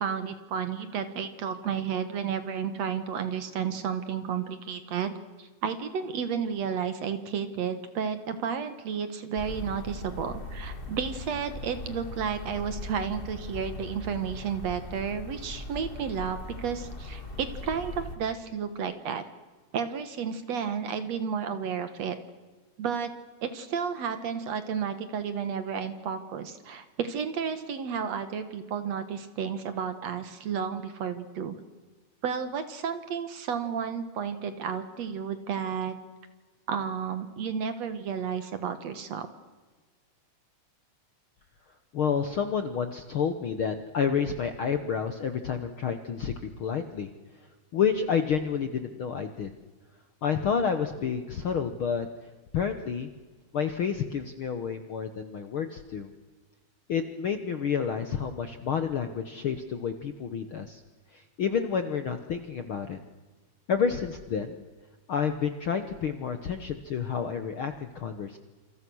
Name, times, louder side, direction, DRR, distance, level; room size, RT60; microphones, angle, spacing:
voice 1, 0.0-19.2 19.7-22.2 22.8-23.1 23.4-31.6 32.2-36.0 36.7-39.3, right 7 dB, 60° right, 10 dB, 2.4 m, -32 dB
sound 1, 9.3-18.2, left 2 dB, 20° left, 1.6 m, -40 dB
voice 2, 41.9-46.3 46.6-47.1 47.7-49.5 50.2-52.1 52.5-53.1 53.5-56.1 56.9-60.8 61.1-63.0 63.7-64.6 65.1-68.4, left 7 dB, 60° left, 8 dB, 1.5 m, -29 dB
28.0 x 26.5 x 6.3 m, 1.3 s
omnidirectional pair, 3.8 m